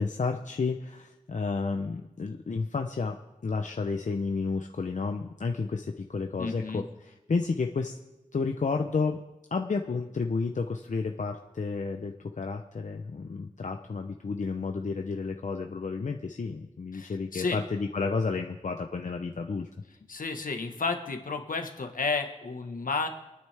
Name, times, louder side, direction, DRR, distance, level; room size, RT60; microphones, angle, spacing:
voice 1, 0.0-3.2 3.4-8.0 8.3-9.2 9.5-19.7, left 4 dB, 60° left, 4 dB, 0.8 m, -31 dB
voice 2, 6.4-6.8 16.9-17.6 20.1-23.1, left 4 dB, 80° left, 5 dB, 1.5 m, -32 dB
26.0 x 9.6 x 3.5 m, 1.0 s
wide cardioid pair, 95°, 14 cm